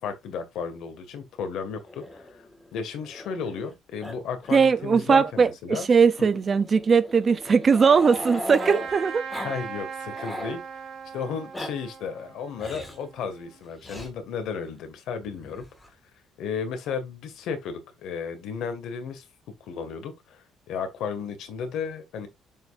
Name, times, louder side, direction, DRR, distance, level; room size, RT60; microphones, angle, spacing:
voice 1, 0.0-2.4 2.7-5.9 6.2-6.3 9.3-10.6 11.1-15.6 16.4-19.2 19.6-22.3, left 6 dB, 65° left, 1.9 m, -34 dB
Growling, 1.8-3.7 4.0-4.2 4.4-4.6 4.9-5.0 6.0-8.9 9.3-9.6 9.9-10.6 11.3-11.7 12.6-13.0 13.8-14.1 15.2-15.9, left 1 dB, 10° left, 1.8 m, -38 dB
voice 2, 4.5-9.2, right 5 dB, 25° right, 0.6 m, -20 dB
Trumpet, 8.6-13.6, right 6 dB, 45° right, 2.0 m, -39 dB
7.4 x 5.4 x 2.5 m
cardioid pair, 170°, 0 cm